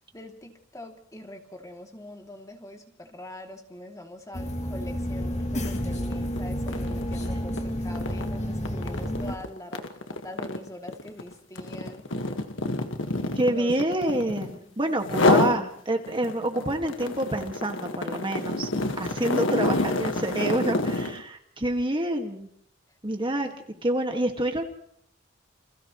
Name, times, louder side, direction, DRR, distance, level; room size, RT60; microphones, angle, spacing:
voice 1, 0.1-12.1 13.4-13.9 14.5-14.9 23.4-23.9, left 1 dB, 20° left, 2 dB, 2.8 m, -44 dB
sound 1, 4.3-9.4, equal, 40° left, 2.5 m, -30 dB
sound 2, 5.6-5.8 6.1-14.6 15.0-15.6 16.0-21.2, left 2 dB, 90° left, 1.7 m, -27 dB
voice 2, 13.4-18.7 19.0-22.5 23.0-23.5 23.8-24.6, right 1 dB, 25° right, 4 dB, 1.9 m, -27 dB
29.5 x 28.0 x 3.2 m, 0.68 s
head